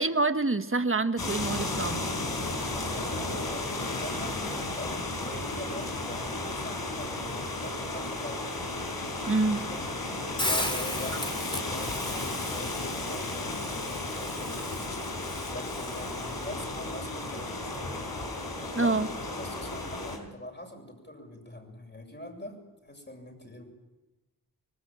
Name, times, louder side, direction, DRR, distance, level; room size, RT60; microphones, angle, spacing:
voice 1, 0.0-2.0 9.3-9.6 18.7-19.1, right 3 dB, 35° right, 9 dB, 1.6 m, -26 dB
sound 1, 1.2-20.2, left 2 dB, 65° left, 5.0 m, -34 dB
voice 2, 2.9-8.5 9.3-14.6 15.4-17.7 18.7-19.1 19.4-22.6 22.8-23.6, left 1 dB, 25° left, 3 dB, 7.7 m, -43 dB
Hiss, 10.4-16.5, left 1 dB, 10° left, 3.9 m, -36 dB
25.5 x 20.0 x 9.0 m, 1.1 s
cardioid pair, 55°, 38 cm